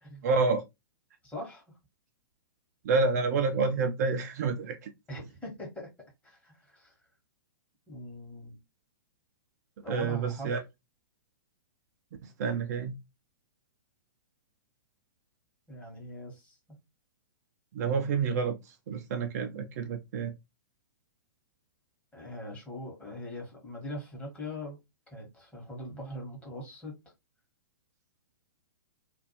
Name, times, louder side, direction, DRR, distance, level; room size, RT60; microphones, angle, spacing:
voice 1, 0.2-0.6 2.8-4.9 9.9-10.6 12.2-12.9 17.7-20.3, right 4 dB, 50° right, 0.4 m, -28 dB
voice 2, 1.2-1.8 5.1-5.9 6.2-7.0 7.9-8.6 9.8-10.5 15.7-16.8 22.1-24.8 25.1-27.0, left 1 dB, 10° left, 1.2 m, -42 dB
2.6 x 2.3 x 2.8 m
figure-of-eight pair, 110°, 12 cm